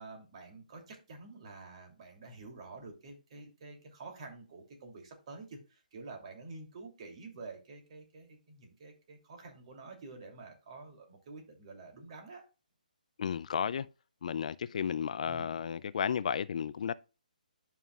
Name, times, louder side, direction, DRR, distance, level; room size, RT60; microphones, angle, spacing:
voice 1, 0.0-12.5 15.2-15.5, right 3 dB, 45° right, 2.9 m, -49 dB
voice 2, 13.2-13.9 14.2-16.9, left 7 dB, 55° left, 0.4 m, -33 dB
11.0 x 5.7 x 2.4 m
hypercardioid pair, 145°, 5 cm